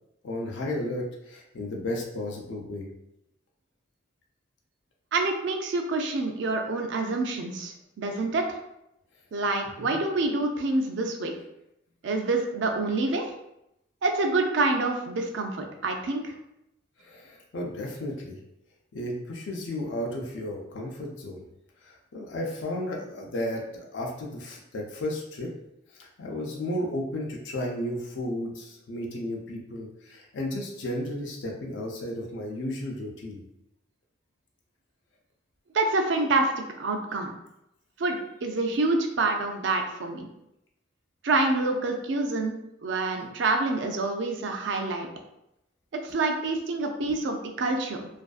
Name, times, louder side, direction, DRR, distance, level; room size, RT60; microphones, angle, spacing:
voice 1, 0.2-2.9 9.8-10.0 17.0-18.4 18.9-21.5 21.8-25.5 25.9-33.4, left 1 dB, 70° left, -1 dB, 0.4 m, -33 dB
voice 2, 5.1-8.6 9.3-11.3 12.0-13.2 14.0-16.3 35.7-37.3 38.0-40.3 41.2-42.5 42.8-45.1 46.0-48.1, right 2 dB, 70° right, 4 dB, 0.4 m, -27 dB
2.5 x 2.3 x 2.4 m, 0.84 s
head